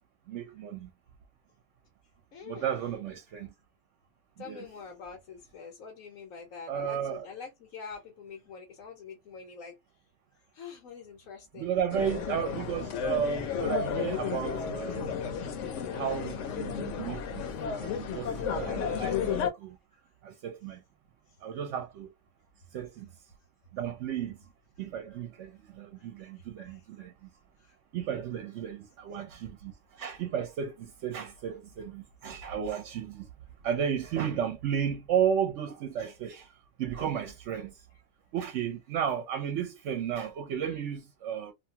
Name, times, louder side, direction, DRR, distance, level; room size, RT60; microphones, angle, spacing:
voice 1, 0.3-0.9 2.4-3.5 4.4-4.6 6.7-7.3 11.5-15.2 15.9-17.4 17.7-19.8 20.2-20.8 21.4-22.1 22.7-23.1 23.7-24.5 24.8-27.3 27.9-33.3 33.6-37.8 38.3-41.5, right 8 dB, 65° right, 0.9 m, -33 dB
voice 2, 2.3-2.9 4.4-9.8 10.3-11.8 19.9-20.0 21.3-21.4 26.0-26.8 27.6-27.8, left 5 dB, 90° left, 1.2 m, -46 dB
sound 1, 11.9-19.5, left 7 dB, 70° left, 1.0 m, -33 dB
2.7 x 2.3 x 2.7 m
omnidirectional pair, 1.4 m